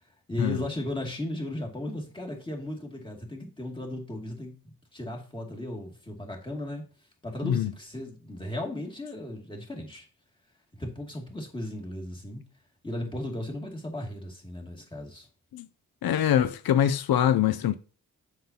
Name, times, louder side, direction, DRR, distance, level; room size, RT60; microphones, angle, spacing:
voice 1, 0.3-4.5 4.9-6.8 7.2-10.1 10.8-12.4 12.8-15.3, left 1 dB, 15° left, 2.4 m, -36 dB
voice 2, 16.0-17.8, left 10 dB, 85° left, 0.5 m, -24 dB
7.7 x 7.1 x 2.8 m
wide cardioid pair, 90°, 36 cm